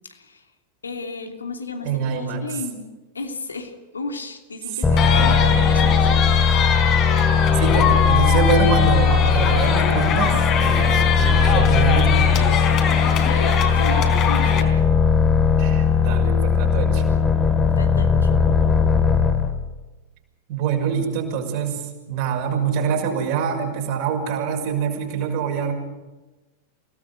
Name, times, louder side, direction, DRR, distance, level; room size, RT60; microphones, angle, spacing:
voice 1, 0.1-0.4 0.8-6.2 13.2-14.7 17.8-18.3, left 3 dB, 75° left, 4 dB, 2.9 m, -34 dB
voice 2, 1.8-2.4 4.7-6.2 7.5-12.5 15.6-17.0 20.5-21.8 22.1-25.7, right 6 dB, 45° right, 3 dB, 6.1 m, -25 dB
sound 1, 4.8-19.5, left 6 dB, 15° left, 2.5 m, -18 dB
sound 2, 5.0-14.6, left 6 dB, 35° left, 4.1 m, -23 dB
28.5 x 18.5 x 6.9 m, 1.1 s
figure-of-eight pair, 90°, 0 cm